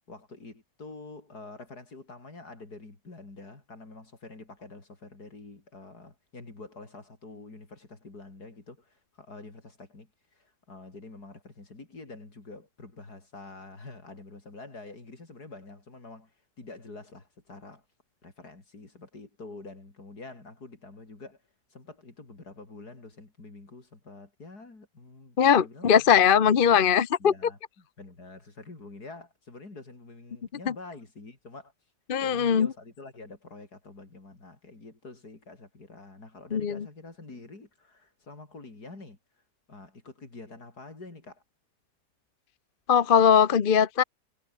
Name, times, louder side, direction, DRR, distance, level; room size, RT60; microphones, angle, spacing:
voice 1, 0.1-17.8 18.2-21.4 21.7-26.9 27.2-31.7 32.2-39.2 39.7-41.4, left 3 dB, 60° left, 5.2 m, -47 dB
voice 2, 25.4-27.3 32.1-32.7 36.5-36.8 42.9-44.0, left 7 dB, 40° left, 0.8 m, -20 dB
omnidirectional pair, 1.8 m